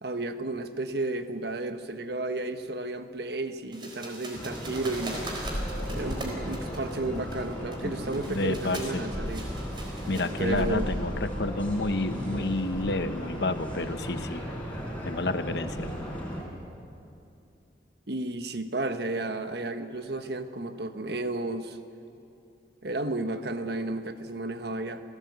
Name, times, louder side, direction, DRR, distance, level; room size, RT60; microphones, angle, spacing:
voice 1, 0.0-5.2 5.9-9.5 10.4-10.9 18.1-21.8 22.8-25.0, right 2 dB, 65° right, 8 dB, 1.3 m, -32 dB
sound 1, 3.7-11.1, right 1 dB, 25° right, 4.1 m, -42 dB
sound 2, 4.3-16.4, equal, 10° left, 5.0 m, -35 dB
sound 3, 5.9-14.1, equal, 45° right, 6.6 m, -44 dB
voice 2, 8.3-9.0 10.1-14.4 15.0-15.9, left 2 dB, 75° left, 10 dB, 1.0 m, -30 dB
27.5 x 17.0 x 8.2 m, 2.7 s
head